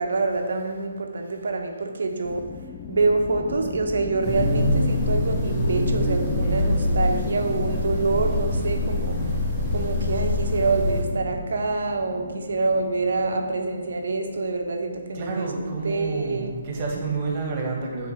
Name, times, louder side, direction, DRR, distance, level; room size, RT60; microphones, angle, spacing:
voice 1, 0.0-2.5 2.9-9.4 9.7-16.5, right 3 dB, 60° right, 4 dB, 1.0 m, -26 dB
sound 1, 2.2-14.5, left 7 dB, 25° left, 0.4 m, -37 dB
sound 2, 4.2-11.0, left 1 dB, ahead, 2.0 m, -24 dB
voice 2, 15.1-18.1, right 4 dB, 35° right, 0 dB, 1.6 m, -29 dB
7.9 x 4.3 x 5.7 m, 1.6 s
figure-of-eight pair, 140°, 0 cm